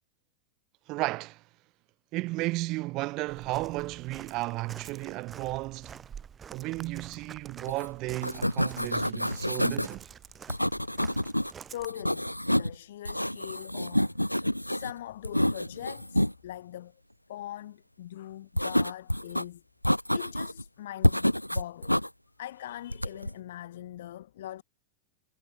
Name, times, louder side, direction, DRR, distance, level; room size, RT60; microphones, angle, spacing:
voice 1, 0.9-1.4 2.1-6.0 6.5-10.0, right 21 dB, 40° right, 0.4 m, -34 dB
Walk footsteps, 3.3-11.9, right 7 dB, 20° right, 1.1 m, -48 dB
sound 1, 7.7-7.9 8.1-9.9 10.5-11.5 11.8-12.7 13.0-14.9 15.2-16.3 18.6-19.4 19.8-20.6 21.0-22.1 22.9-23.3, equal, 90° left, 0.9 m, -28 dB
voice 2, 11.7-16.9 17.3-19.6 19.9-22.0 22.4-24.6, left 13 dB, 60° left, 3.0 m, -42 dB
figure-of-eight pair, 90°, 0 cm